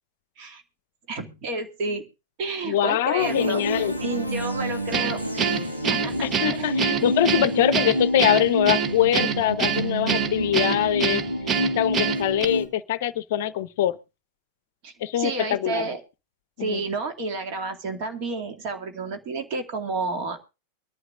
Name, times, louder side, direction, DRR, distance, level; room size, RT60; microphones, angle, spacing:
voice 1, 1.1-2.1 2.4-5.5 5.9-7.2 14.8-16.0 16.6-20.4, right 3 dB, 45° right, 2.3 m, -31 dB
voice 2, 2.6-4.0 6.2-11.2 11.8-14.0 15.0-15.9 16.6-16.8, left 12 dB, 55° left, 0.6 m, -23 dB
sound 1, 3.2-12.7, equal, 90° right, 1.7 m, -28 dB
Guitar, 4.9-12.5, right 7 dB, 25° right, 0.8 m, -26 dB
24.0 x 11.0 x 2.5 m
figure-of-eight pair, 90°, 0 cm